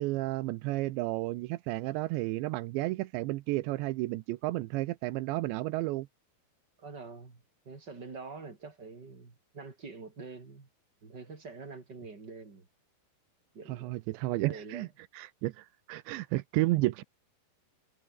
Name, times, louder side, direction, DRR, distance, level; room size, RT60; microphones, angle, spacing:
voice 1, 0.0-6.1 13.7-14.9 15.1-17.0, right 19 dB, 85° right, 3.1 m, -32 dB
voice 2, 6.8-10.7 11.0-12.7 13.5-14.0 14.5-14.9, right 4 dB, 25° right, 3.6 m, -46 dB
omnidirectional pair, 5.1 m